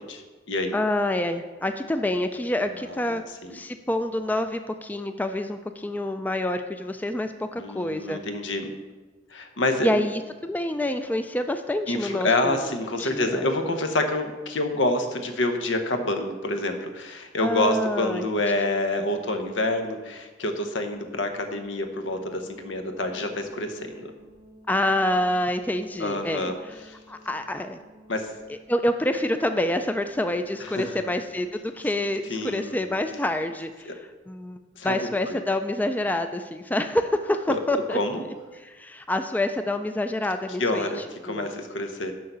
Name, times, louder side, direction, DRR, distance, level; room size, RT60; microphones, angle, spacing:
voice 1, 0.0-0.8 2.9-3.6 7.6-8.7 9.3-10.0 11.9-24.1 26.0-26.6 26.9-27.0 28.1-28.3 30.6-31.0 32.3-32.8 33.9-34.0 34.8-35.4 37.5-37.6 37.9-38.2 40.6-42.1, left 2 dB, 85° left, 6 dB, 1.0 m, -27 dB
voice 2, 0.7-3.2 3.5-8.2 9.8-12.6 13.0-13.5 17.4-18.3 24.7-26.5 27.1-27.8 28.5-34.0 34.3-34.6 34.8-38.0 38.6-40.9 41.3-41.5, left 1 dB, 10° left, 8 dB, 0.3 m, -27 dB
sound 1, 20.9-33.3, equal, 65° left, 2.3 m, -52 dB
6.4 x 5.8 x 6.7 m, 1.3 s
head